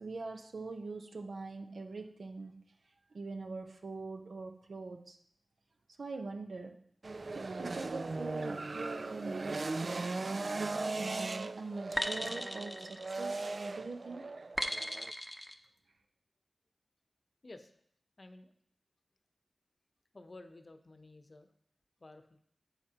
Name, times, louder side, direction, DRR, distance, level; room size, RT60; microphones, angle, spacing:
voice 1, 0.0-2.6 3.1-5.2 6.0-6.8 7.3-10.1 10.6-14.3, right 3 dB, 80° right, 4 dB, 0.9 m, -43 dB
sound 1, 7.0-15.1, right 3 dB, 60° right, 0.3 m, -38 dB
sound 2, 10.5-10.9 12.0-13.6 14.6-15.5, equal, 10° left, 0.8 m, -38 dB
voice 2, 18.2-18.5 20.1-21.5 22.0-22.4, left 2 dB, 50° left, 7 dB, 0.8 m, -52 dB
11.0 x 7.5 x 2.9 m, 0.65 s
cardioid pair, 45°, 0 cm